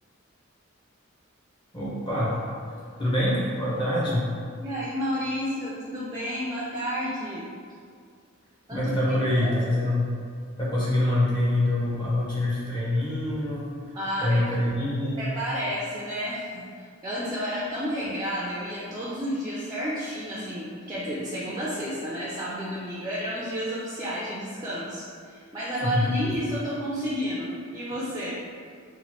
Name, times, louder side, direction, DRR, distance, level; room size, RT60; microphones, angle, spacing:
voice 1, 1.7-2.3 3.0-4.2 8.7-10.1 10.6-13.6 14.2-15.2 25.8-26.1, left 1 dB, 25° left, -7 dB, 0.6 m, -25 dB
voice 2, 4.6-7.5 8.7-9.5 13.9-14.5 15.2-28.4, equal, 20° right, -8 dB, 0.3 m, -31 dB
2.9 x 2.1 x 2.9 m, 2.1 s
head